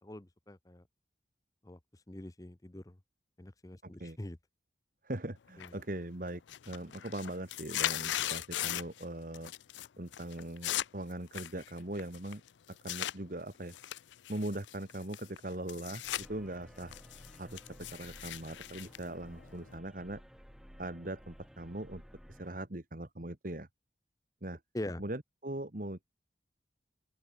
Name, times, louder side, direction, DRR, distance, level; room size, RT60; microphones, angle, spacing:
voice 1, 0.0-0.8 1.6-1.8 2.1-3.0 3.4-4.4 5.6-5.8 24.7-25.0, left 1 dB, 20° left, 0.7 m, -43 dB
voice 2, 3.8-4.2 5.0-6.4 6.7-9.5 10.0-12.4 12.8-13.7 14.3-16.9 17.4-20.2 20.8-22.0 22.3-23.7 24.4-24.6 25.0-26.1, right 1 dB, 50° right, 1.7 m, -40 dB
sound 1, 5.6-6.0 6.3-9.0 9.3-9.9 10.1-13.2 13.7-16.3 16.6-19.8, left 13 dB, 80° left, 0.4 m, -38 dB
sound 2, 16.0-22.5, equal, ahead, 1.4 m, -55 dB
open air
head